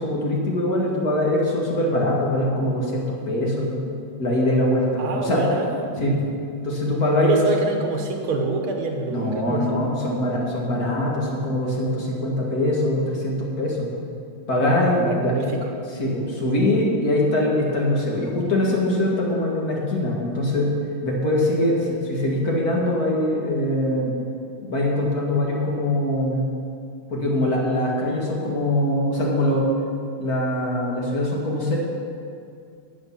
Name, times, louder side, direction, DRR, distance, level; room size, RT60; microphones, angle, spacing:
voice 1, 0.0-3.8 4.2-5.4 6.0-6.3 6.6-7.5 9.1-13.9 14.5-15.4 16.0-20.7 21.0-24.1 24.6-26.5 27.1-29.7 30.2-31.8, left 1 dB, 50° left, -3 dB, 2.2 m, -22 dB
voice 2, 5.0-5.8 6.1-6.2 7.2-9.9 14.9-15.8, right 3 dB, 85° right, 3 dB, 2.1 m, -26 dB
10.5 x 9.0 x 5.8 m, 2.4 s
omnidirectional pair, 2.2 m